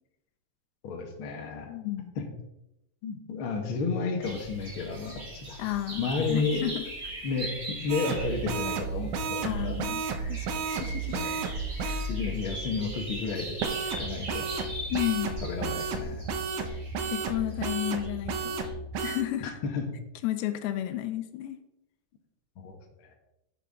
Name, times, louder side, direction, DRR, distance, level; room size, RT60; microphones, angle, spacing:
voice 1, 0.8-1.7 2.1-2.2 3.0-5.6 6.0-6.6 7.2-9.8 11.1-11.3 12.1-13.6 14.0-14.5 15.4-16.2 19.4-19.8 22.6-23.1, left 4 dB, 60° left, 2 dB, 1.3 m, -32 dB
voice 2, 1.7-2.1 5.6-6.9 9.4-11.2 14.9-15.4 17.1-18.6 19.0-19.6 20.2-21.6, left 14 dB, 85° left, 10 dB, 2.5 m, -32 dB
sound 1, 4.2-18.7, equal, 25° right, 1.1 m, -40 dB
sound 2, 7.9-12.1 13.6-19.2, right 5 dB, 70° right, 1.9 m, -33 dB
9.7 x 7.1 x 3.6 m, 0.88 s
omnidirectional pair, 4.4 m